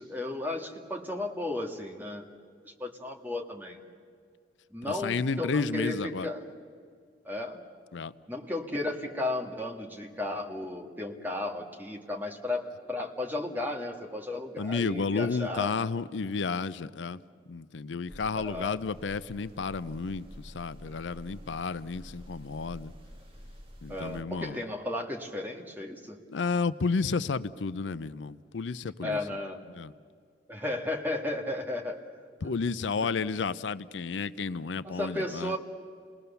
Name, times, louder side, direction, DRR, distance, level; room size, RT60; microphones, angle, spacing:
voice 1, 0.0-2.3 2.6-3.8 4.7-6.4 7.2-7.6 8.3-15.7 18.4-18.8 23.9-26.2 29.0-29.6 30.5-32.0 32.4-32.5 34.8-35.6, left 2 dB, 10° right, 2 dB, 1.8 m, -34 dB
voice 2, 4.8-6.3 7.9-8.1 14.6-17.2 17.5-22.9 23.8-24.6 26.3-29.2 29.7-29.9 32.4-35.6, left 4 dB, 85° left, 16 dB, 0.5 m, -32 dB
sound 1, 18.1-24.2, equal, 30° right, 1.9 m, -48 dB
28.5 x 20.0 x 6.9 m, 2.1 s
head